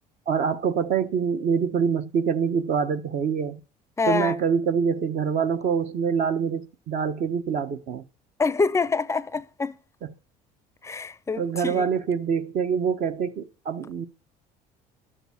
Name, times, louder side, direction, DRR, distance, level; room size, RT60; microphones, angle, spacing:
voice 1, 0.3-3.6 4.1-8.0 10.0-10.1 11.4-14.1, right 6 dB, 55° right, 1.1 m, -25 dB
voice 2, 4.0-4.3 8.4-9.7 10.8-11.9, left 4 dB, 20° left, 0.5 m, -26 dB
12.0 x 7.1 x 7.1 m
cardioid pair, 125°, 16 cm